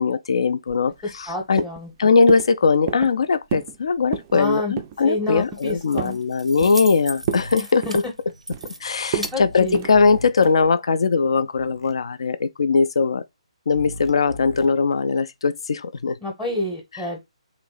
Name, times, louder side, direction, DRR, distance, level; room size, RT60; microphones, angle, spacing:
voice 1, 0.0-1.6 2.0-7.8 8.8-13.2 13.7-16.2, left 4 dB, 55° left, 0.4 m, -20 dB
sound 1, 0.7-1.3 1.6-1.9 2.3-2.5 2.9-3.2 3.5-3.8 4.0-4.4 4.8-5.0 5.4-6.2 6.6-6.9 7.2-7.5 7.8-8.7 9.1-9.3 9.7-9.9 10.4-10.7, right 9 dB, 25° right, 0.3 m, -30 dB
voice 2, 1.0-2.1 4.3-4.8 5.0-6.2 7.6-8.0 9.2-9.9 16.2-17.2, left 2 dB, 5° left, 0.8 m, -29 dB
Keys jangling, 5.3-10.4, right 1 dB, 85° right, 0.5 m, -37 dB
sound 2, 7.2-7.6 9.4-10.3 11.5-11.9 13.7-14.7, left 1 dB, 75° left, 0.8 m, -37 dB
3.0 x 2.6 x 3.9 m
figure-of-eight pair, 135°, 3 cm